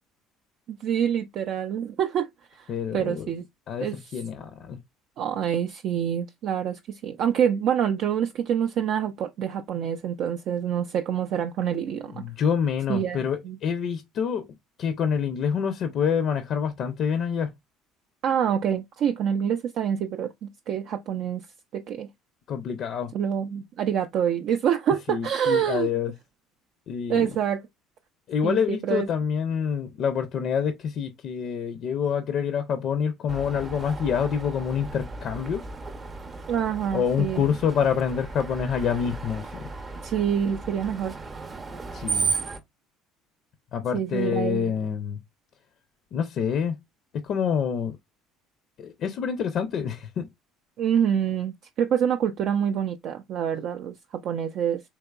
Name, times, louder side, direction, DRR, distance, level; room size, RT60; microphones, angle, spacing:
voice 1, 0.7-2.3 2.5-3.4 3.8-4.0 5.2-12.2 12.9-13.6 18.2-21.4 21.7-22.1 23.1-25.9 27.1-27.6 28.4-29.1 36.5-37.4 40.0-41.1 43.9-44.7 50.8-54.8, right 8 dB, 60° right, 0.3 m, -26 dB
voice 2, 2.7-3.3 3.7-4.8 12.1-14.5 14.8-17.5 22.5-23.1 25.1-26.1 26.9-27.3 28.3-35.6 36.9-39.7 41.9-42.3 43.7-45.2 46.1-46.8 47.1-48.0 48.8-50.3, left 7 dB, 55° left, 0.5 m, -27 dB
Screech, 33.3-42.6, right 4 dB, 30° right, 0.7 m, -35 dB
3.4 x 2.9 x 2.3 m
supercardioid pair, 80°, 0 cm